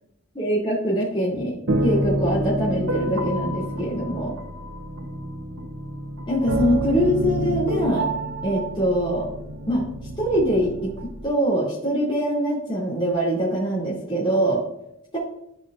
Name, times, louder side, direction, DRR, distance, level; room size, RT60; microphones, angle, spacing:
voice 1, 0.3-4.4 6.3-8.1 8.4-9.3 9.7-9.9 10.2-10.9 11.2-14.6 15.1-15.2, equal, 25° left, -8 dB, 2.6 m, -23 dB
sound 1, 1.7-11.3, right 1 dB, 60° right, 0.9 m, -28 dB
12.0 x 5.2 x 2.5 m, 0.79 s
head